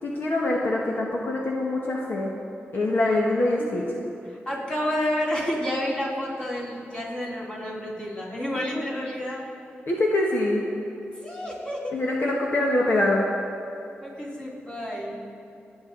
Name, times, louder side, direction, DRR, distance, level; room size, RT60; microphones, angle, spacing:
voice 1, 0.0-2.3 2.7-3.8 8.5-8.8 9.9-10.6 11.9-13.3, left 2 dB, 55° left, -2 dB, 1.5 m, -24 dB
voice 2, 3.6-3.9 4.3-9.4 11.0-11.9 14.0-15.2, equal, 20° left, -5 dB, 3.5 m, -30 dB
28.0 x 9.5 x 4.0 m, 2.8 s
wide cardioid pair, 130°, 4 cm